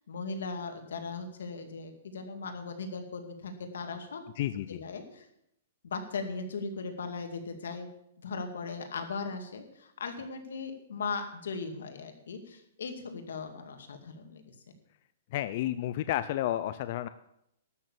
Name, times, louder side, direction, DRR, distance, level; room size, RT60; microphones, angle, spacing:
voice 1, 0.0-4.2 4.7-5.3 5.8-7.9 8.2-14.5, left 4 dB, 90° left, 6 dB, 2.3 m, -38 dB
voice 2, 4.4-4.8 15.3-17.1, left 13 dB, 45° left, 13 dB, 0.5 m, -31 dB
12.5 x 6.5 x 8.6 m, 0.77 s
hypercardioid pair, 160°, 0 cm